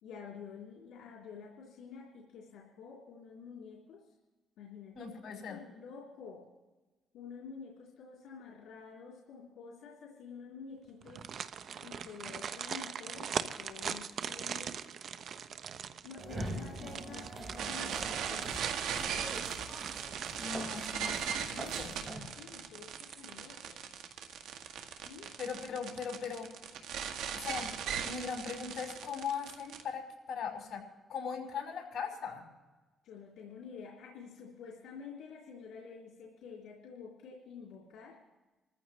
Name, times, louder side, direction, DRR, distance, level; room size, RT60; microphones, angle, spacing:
voice 1, 0.0-4.1 4.6-5.1 5.5-6.5 7.1-11.3 11.8-14.9 16.0-18.8 21.2-21.5 22.1-23.7 25.0-25.3 33.0-38.2, left 6 dB, 85° left, -3 dB, 3.1 m, -49 dB
voice 2, 4.9-5.6 20.4-22.0 25.4-26.5 27.3-27.7 28.0-30.8 31.1-32.4, left 6 dB, 60° left, 0 dB, 5.9 m, -39 dB
sound 1, 11.0-22.0 22.3-22.4 22.8-23.5 23.8-23.9, right 7 dB, 60° right, 0.8 m, -41 dB
sound 2, 16.2-22.2, right 1 dB, 20° right, 5.0 m, -44 dB
sound 3, 17.6-29.8, right 8 dB, 85° right, 1.4 m, -39 dB
27.5 x 14.5 x 3.1 m, 1.2 s
cardioid pair, 90°, 0 cm